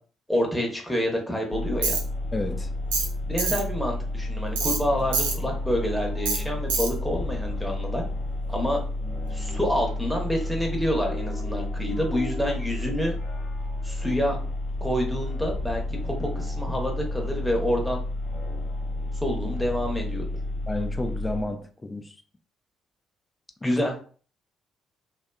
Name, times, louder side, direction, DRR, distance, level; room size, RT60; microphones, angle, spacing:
voice 1, 0.3-2.0 3.3-8.0 8.5-8.8 9.3-13.1 13.8-14.4 14.8-18.0 19.2-20.3 23.6-23.9, equal, 5° left, 0 dB, 0.8 m, -28 dB
sound 1, 1.5-21.4, left 1 dB, 55° left, 0.8 m, -31 dB
Tools, 1.8-2.0 2.9-3.1 3.4-3.6 4.6-4.8 5.1-5.4 6.3-6.4 6.7-6.9, right 4 dB, 75° right, 0.4 m, -25 dB
voice 2, 2.3-2.7 20.7-22.0 23.6-23.8, left 2 dB, 20° left, 7 dB, 0.3 m, -30 dB
2.4 x 2.3 x 2.2 m, 0.42 s
figure-of-eight pair, 45°, 0 cm